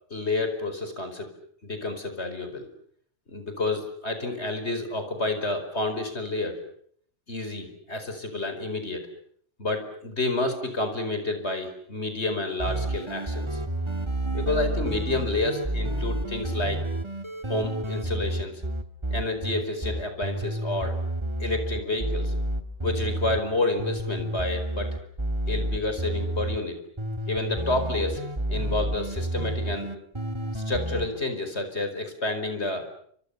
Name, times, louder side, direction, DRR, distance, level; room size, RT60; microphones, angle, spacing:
voice 1, 0.1-1.3 1.6-2.7 3.3-6.6 7.3-9.1 9.6-13.6 14.3-16.8 17.5-18.6 19.1-21.0 21.4-22.3 22.8-25.0 25.4-26.8 27.3-28.2 28.5-29.9 30.5-32.8, left 2 dB, 60° left, 8 dB, 5.2 m, -29 dB
sound 1, 12.6-23.4 23.8-26.6 27.0-31.1, right 1 dB, 25° right, 1.8 m, -30 dB
30.0 x 26.0 x 6.9 m, 0.63 s
omnidirectional pair, 1.3 m